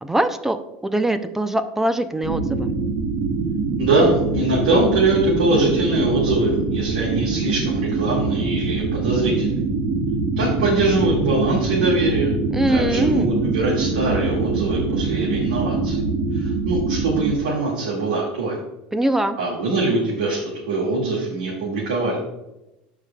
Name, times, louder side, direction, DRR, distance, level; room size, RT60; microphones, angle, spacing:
voice 1, 0.0-0.6 0.8-2.7 12.5-13.3 18.9-19.4, right 1 dB, 10° right, 10 dB, 0.5 m, -22 dB
sound 1, 2.2-17.3, right 4 dB, 60° right, 1.3 m, -24 dB
voice 2, 3.8-9.5 10.4-12.3 12.7-16.0 16.3-18.6 19.4-22.2, right 2 dB, 90° right, -6 dB, 2.1 m, -22 dB
14.0 x 4.9 x 2.3 m, 0.95 s
supercardioid pair, 110°, 4 cm